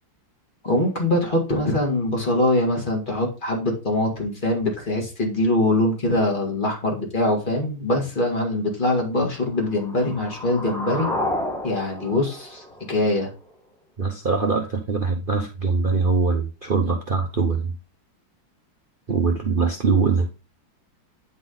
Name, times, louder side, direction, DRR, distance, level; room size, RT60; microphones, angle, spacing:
voice 1, 0.6-11.1 11.6-13.3, left 1 dB, 25° left, 1 dB, 2.1 m, -23 dB
sound 1, 9.5-13.5, left 1 dB, ahead, 1.2 m, -31 dB
voice 2, 14.0-17.7 19.1-20.3, right 4 dB, 55° right, 3 dB, 0.6 m, -22 dB
9.9 x 4.1 x 3.8 m, 0.30 s
omnidirectional pair, 2.2 m